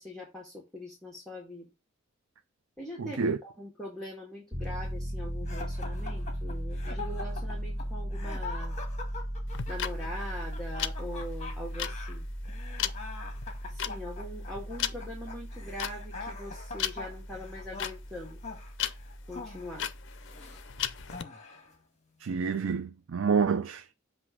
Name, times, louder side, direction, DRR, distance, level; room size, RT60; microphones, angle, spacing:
voice 1, 0.0-1.7 2.8-8.8 9.7-12.2 13.6-18.4 19.3-19.9, equal, 5° left, 1.7 m, -42 dB
voice 2, 3.0-3.4 22.2-23.9, right 5 dB, 80° right, 0.5 m, -28 dB
Piano, 4.5-21.2, equal, 15° right, 2.1 m, -38 dB
sound 1, 5.5-20.6 21.1-21.8, left 4 dB, 35° left, 1.6 m, -44 dB
sound 2, 9.5-21.2, left 10 dB, 65° left, 0.5 m, -37 dB
7.7 x 2.7 x 5.9 m
head